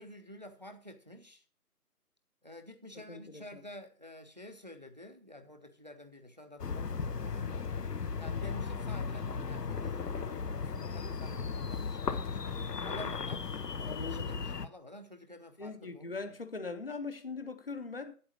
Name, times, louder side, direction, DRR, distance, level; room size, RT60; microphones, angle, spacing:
voice 1, 0.0-1.4 2.4-7.7 8.2-13.5 14.0-16.3, left 1 dB, 30° right, 0.7 m, -50 dB
voice 2, 3.1-3.6 13.8-14.3 15.6-18.2, left 4 dB, 40° left, 0.9 m, -41 dB
sound 1, 6.6-14.7, left 5 dB, 90° left, 1.0 m, -36 dB
8.6 x 7.5 x 6.0 m
figure-of-eight pair, 170°, 46 cm